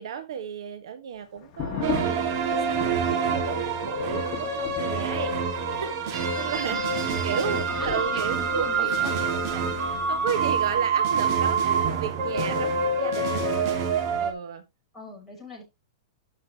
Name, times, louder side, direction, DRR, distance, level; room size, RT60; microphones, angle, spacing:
voice 1, 0.0-5.3 5.8-5.9 6.3-6.8 7.2-8.9 9.3-13.9 14.2-14.6, right 7 dB, 75° right, 1.6 m, -34 dB
sound 1, 1.4-10.8, left 7 dB, 25° left, 2.2 m, -39 dB
sound 2, 1.8-14.3, right 5 dB, 45° right, 2.3 m, -26 dB
voice 2, 6.6-9.2 14.9-15.6, left 2 dB, ahead, 6.5 m, -41 dB
12.5 x 6.6 x 3.1 m
supercardioid pair, 160°, 3 cm